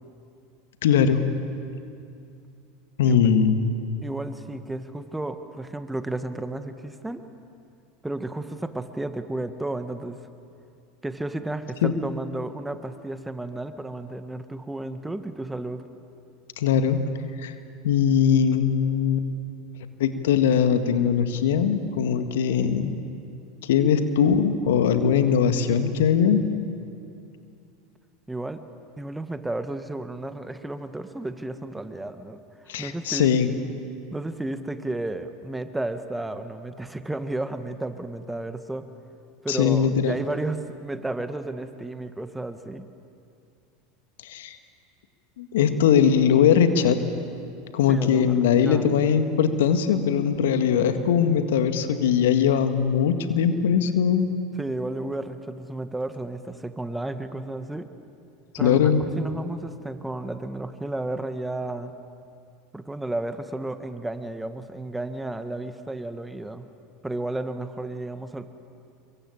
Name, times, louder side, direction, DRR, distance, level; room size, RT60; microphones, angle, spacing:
voice 1, 0.8-1.2 3.0-3.8 11.8-11.9 16.6-17.0 17.4-17.5 17.8-19.3 20.0-23.0 23.6-26.4 32.7-33.5 39.5-40.2 44.2-44.6 45.4-47.0 47.7-54.3 58.6-59.0, left 7 dB, 70° left, 8 dB, 2.0 m, -21 dB
voice 2, 4.0-7.2 8.0-10.2 11.0-15.8 28.3-28.7 29.0-33.4 34.1-38.9 39.4-42.9 47.9-48.9 54.6-57.9 58.6-61.9 62.7-66.7 67.0-68.5, right 2 dB, 10° right, 9 dB, 1.7 m, -33 dB
28.5 x 23.5 x 8.9 m, 2.5 s
hypercardioid pair, 80°, 0 cm